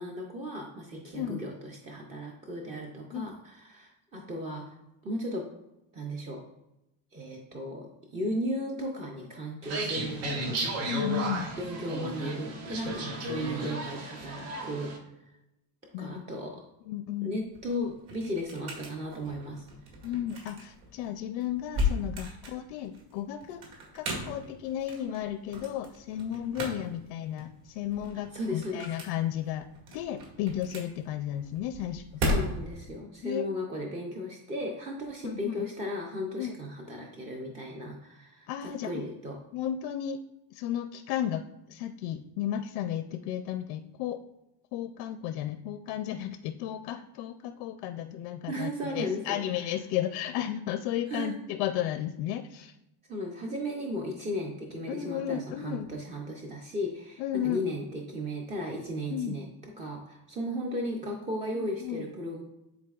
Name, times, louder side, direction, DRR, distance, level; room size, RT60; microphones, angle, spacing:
voice 1, 0.0-4.7 5.0-5.4 5.9-6.4 7.1-10.9 11.6-14.9 16.0-16.6 17.2-19.6 28.3-28.9 32.2-39.3 48.5-49.4 51.1-51.3 53.1-59.5 59.8-62.4, equal, 20° right, 0 dB, 0.3 m, -35 dB
sound 1, 9.6-15.0, right 1 dB, 90° right, 1.5 m, -34 dB
voice 2, 10.9-11.5 15.9-16.2 16.9-17.4 20.0-23.7 23.9-29.7 29.9-32.2 33.2-33.5 35.2-35.6 36.4-36.6 38.5-39.0 39.5-40.2 40.5-44.2 44.7-52.7 54.9-55.9 57.2-57.6 59.1-59.4 61.5-62.0, left 11 dB, 85° left, 8 dB, 0.6 m, -34 dB
sound 2, 17.4-32.9, left 2 dB, 60° right, 2.0 m, -36 dB
10.5 x 4.1 x 2.3 m, 0.90 s
cardioid pair, 175°, 45 cm